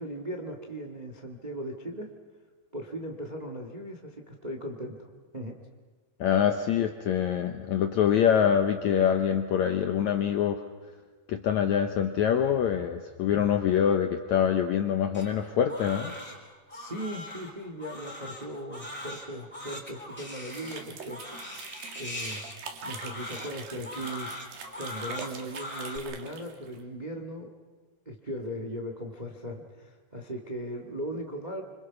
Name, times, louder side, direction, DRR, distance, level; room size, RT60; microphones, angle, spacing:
voice 1, 0.0-2.1 2.7-5.0 5.3-5.6 16.7-21.2 21.5-21.6 22.0-22.4 22.8-24.4 24.8-27.5 28.0-31.6, equal, 40° right, 4 dB, 0.6 m, -38 dB
voice 2, 6.2-10.6 11.3-16.1, left 8 dB, 75° left, 6 dB, 1.7 m, -25 dB
Crying sobbing, 15.1-26.0, left 1 dB, 5° left, 3.4 m, -41 dB
sound 1, 20.5-26.8, right 5 dB, 70° right, 3.8 m, -44 dB
27.0 x 25.5 x 5.9 m, 1.5 s
omnidirectional pair, 4.4 m